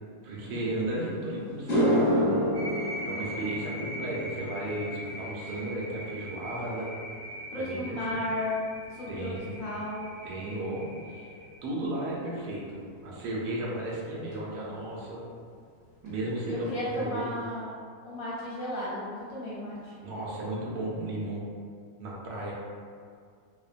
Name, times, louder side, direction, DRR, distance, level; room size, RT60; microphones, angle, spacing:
voice 1, 0.2-2.6 3.0-6.9 7.5-8.2 9.1-9.6 10.2-11.3 11.6-15.3 16.0-17.4 20.0-21.4 22.0-22.5, right 1 dB, 80° right, -5 dB, 1.1 m, -34 dB
sound 1, 1.0-1.1 1.5-10.0 10.3-10.7 14.3-14.4 16.1-16.2 16.4-16.6 16.8-17.4, equal, 45° left, 0.9 m, -31 dB
sound 2, 2.5-11.6, equal, 65° right, 0.8 m, -41 dB
voice 2, 7.5-9.3 9.6-10.1 16.5-17.7 18.0-20.0, left 1 dB, 65° left, -8 dB, 1.0 m, -34 dB
2.9 x 2.1 x 2.4 m, 2.1 s
omnidirectional pair, 1.6 m